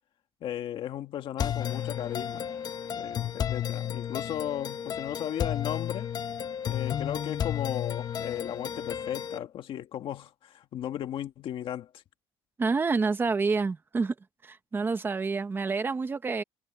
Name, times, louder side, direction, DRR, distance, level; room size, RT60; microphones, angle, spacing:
voice 1, 0.4-2.5 3.0-6.1 6.6-12.0, left 11 dB, 55° left, 1.7 m, -36 dB
sound 1, 1.4-9.4, left 9 dB, 40° left, 1.0 m, -33 dB
sound 2, 1.6-9.4, left 3 dB, 15° left, 4.2 m, -58 dB
voice 2, 12.6-14.1 14.4-16.4, right 4 dB, 20° right, 1.1 m, -28 dB
cardioid pair, 155°, 11 cm